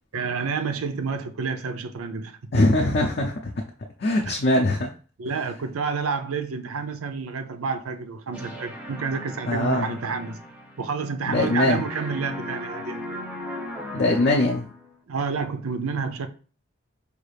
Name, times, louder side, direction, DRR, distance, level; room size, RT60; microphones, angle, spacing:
voice 1, 0.1-2.5 4.3-4.4 5.2-10.4 10.8-13.0 15.1-16.3, right 5 dB, 80° right, 0.5 m, -29 dB
voice 2, 2.5-3.5 4.0-4.9 9.5-10.0 11.3-11.8 13.9-14.7, left 1 dB, 45° left, 0.5 m, -22 dB
sound 1, 8.3-11.1 11.3-14.9, left 1 dB, 5° right, 0.5 m, -37 dB
4.8 x 2.4 x 3.3 m
head